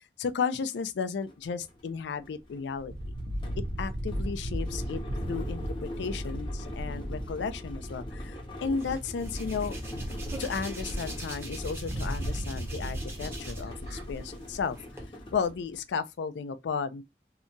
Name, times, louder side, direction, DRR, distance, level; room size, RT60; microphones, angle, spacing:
voice 1, 0.0-2.9 3.8-9.8 10.4-14.8 15.3-17.0, left 5 dB, 85° left, 0.4 m, -34 dB
sound 1, 0.7-0.8 1.2-15.9, left 1 dB, 30° left, 0.6 m, -42 dB
sound 2, 2.8-8.3 8.8-8.9 9.2-14.7, equal, 65° right, 0.5 m, -36 dB
Hands, 8.8-13.8 14.1-15.0, right 2 dB, 15° right, 0.6 m, -45 dB
2.8 x 2.2 x 2.5 m
head